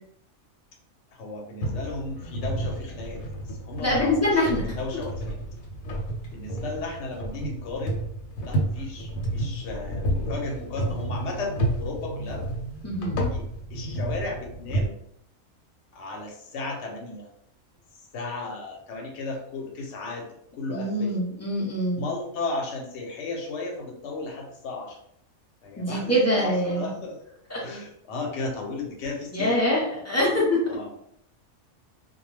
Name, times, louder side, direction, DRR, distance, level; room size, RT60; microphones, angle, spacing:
voice 1, 1.1-5.4 6.3-8.0 8.4-12.4 13.3-13.4 13.7-14.9 15.9-17.3 18.0-20.2 20.5-21.1 22.0-25.0 25.6-27.2 27.6-29.6 30.2-30.4 30.7-30.9, left 3 dB, 60° left, 0 dB, 0.9 m, -35 dB
sound 1, 1.6-14.9, right 1 dB, 85° left, 1.0 m, -31 dB
voice 2, 3.8-4.6 12.8-13.2 20.7-22.0 25.8-26.9 27.5-27.6 29.3-30.6, left 1 dB, 20° left, -5 dB, 0.4 m, -24 dB
2.2 x 2.2 x 3.2 m, 0.71 s
omnidirectional pair, 1.4 m